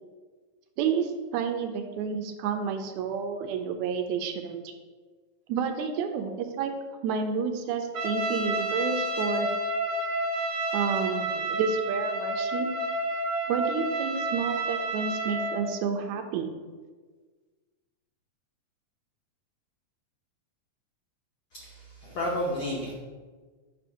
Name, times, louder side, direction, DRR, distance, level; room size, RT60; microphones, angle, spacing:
voice 1, 0.8-4.7 5.5-6.3 6.6-6.7 7.0-9.5 10.7-12.7 13.5-16.5, right 6 dB, 80° right, 5 dB, 1.8 m, -30 dB
Trumpet, 7.9-15.6, right 1 dB, 60° right, 1.0 m, -30 dB
voice 2, 21.5-22.9, left 1 dB, 90° left, -2 dB, 1.1 m, -32 dB
7.7 x 2.7 x 5.5 m, 1.4 s
omnidirectional pair, 3.4 m